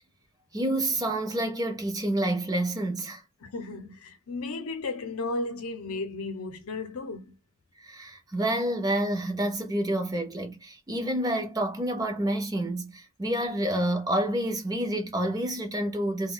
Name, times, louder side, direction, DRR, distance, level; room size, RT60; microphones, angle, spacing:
voice 1, 0.5-3.2 7.8-16.3, right 1 dB, 15° right, 0.6 m, -28 dB
voice 2, 3.4-7.4, left 3 dB, 75° left, 0.7 m, -34 dB
2.3 x 2.2 x 3.7 m
head